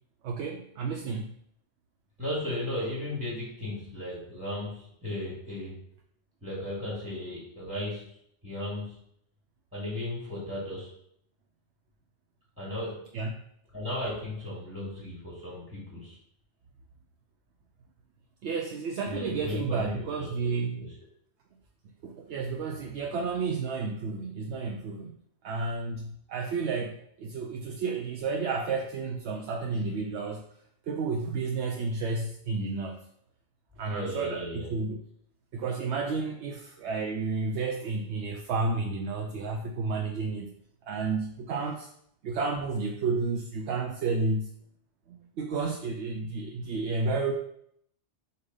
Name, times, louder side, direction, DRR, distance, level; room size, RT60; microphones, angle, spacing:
voice 1, 0.2-1.3 13.1-13.3 18.4-20.9 22.0-25.1 25.4-30.4 30.9-33.1 33.8-35.0 35.5-40.5 40.8-41.9 42.2-44.5 45.1-47.3, right 4 dB, 75° right, 3 dB, 0.9 m, -31 dB
voice 2, 2.2-5.8 6.4-8.1 8.4-9.0 9.7-10.9 12.6-13.0 13.7-16.2 19.1-20.9 29.7-29.9 33.9-34.7, left 1 dB, 5° right, -6 dB, 2.2 m, -35 dB
6.6 x 2.9 x 5.3 m, 0.71 s
omnidirectional pair, 1.2 m